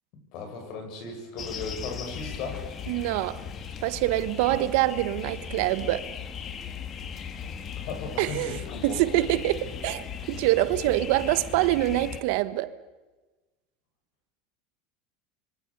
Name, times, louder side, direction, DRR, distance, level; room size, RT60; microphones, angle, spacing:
voice 1, 0.3-2.7 4.4-4.6 7.3-7.5 7.9-9.0, left 4 dB, 60° left, 7.5 m, -37 dB
sound 1, 1.4-12.2, left 7 dB, 35° left, 2.1 m, -38 dB
voice 2, 2.9-3.4 3.8-6.1 8.2-12.7, right 16 dB, 70° right, 1.2 m, -25 dB
26.5 x 24.0 x 6.7 m
supercardioid pair, 115°, 0 cm